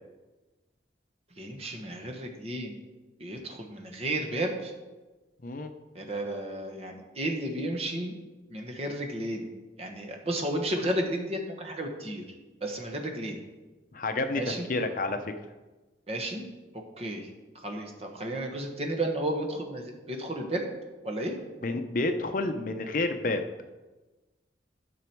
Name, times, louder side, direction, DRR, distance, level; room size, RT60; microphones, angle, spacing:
voice 1, 1.4-2.7 3.2-4.7 5.9-8.1 8.5-9.5 9.8-12.3 12.6-13.4 14.3-14.6 16.1-16.4 17.0-17.2 17.6-20.6 21.0-21.3, right 1 dB, 35° right, 2 dB, 1.3 m, -33 dB
voice 2, 13.9-14.4 14.7-15.3 21.6-23.4, left 2 dB, 50° left, 7 dB, 0.7 m, -29 dB
12.5 x 6.1 x 4.5 m, 1.2 s
head